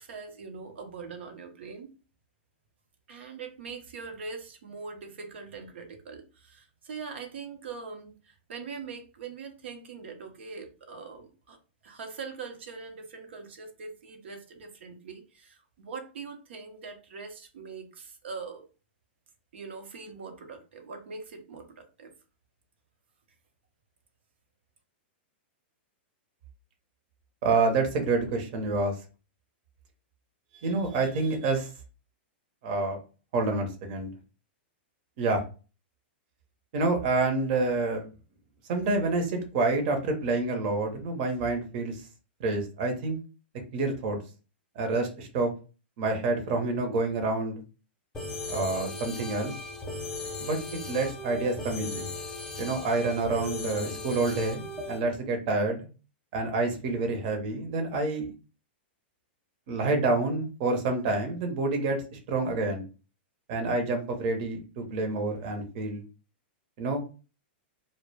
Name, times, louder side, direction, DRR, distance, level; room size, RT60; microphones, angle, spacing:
voice 1, 0.0-1.9 3.1-11.6 11.8-18.7 19.5-22.1, right 5 dB, 80° right, 5 dB, 0.7 m, -42 dB
voice 2, 27.4-29.0 30.6-31.7 32.6-33.0 33.3-34.1 35.2-35.4 36.7-38.1 38.7-42.0 42.4-43.2 43.7-44.2 44.8-45.5 46.0-47.6 48.5-49.5 50.4-50.6 50.9-52.1 52.6-55.8 56.3-58.3 59.7-62.8 63.5-66.0 66.8-67.0, right 3 dB, 50° right, 4 dB, 0.7 m, -28 dB
sound 1, 48.1-55.0, left 2 dB, 10° left, 0.6 m, -37 dB
2.2 x 2.0 x 3.1 m, 0.34 s
hypercardioid pair, 140°, 6 cm